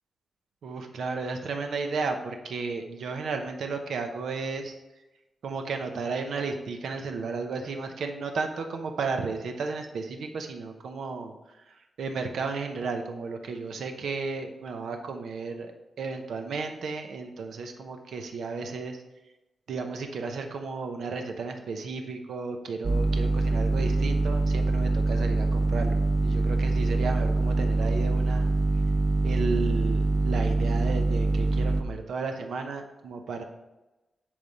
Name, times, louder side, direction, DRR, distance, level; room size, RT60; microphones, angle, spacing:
voice 1, 0.6-4.8 5.4-11.3 11.7-15.7 16.0-19.0 19.7-28.5 29.2-33.4, right 4 dB, 85° right, 5 dB, 0.9 m, -33 dB
sound 1, 22.8-31.8, right 2 dB, 25° right, 0.5 m, -24 dB
10.5 x 3.4 x 4.1 m, 1.0 s
wide cardioid pair, 175°, 0 cm